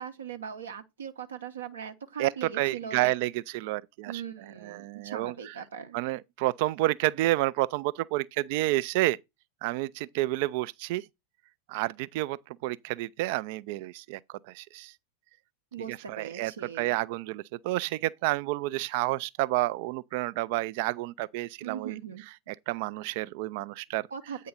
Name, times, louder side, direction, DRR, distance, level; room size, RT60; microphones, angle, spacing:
voice 1, 0.0-3.2 4.1-6.0 15.7-17.0 21.6-22.2 24.1-24.5, right 8 dB, 65° right, 0.8 m, -40 dB
voice 2, 2.2-4.2 4.6-5.5 5.9-9.2 9.6-11.0 11.7-14.9 16.1-16.5 16.8-22.0 22.5-24.1, right 18 dB, 50° right, 0.4 m, -30 dB
8.6 x 3.7 x 5.7 m
figure-of-eight pair, 90°, 0 cm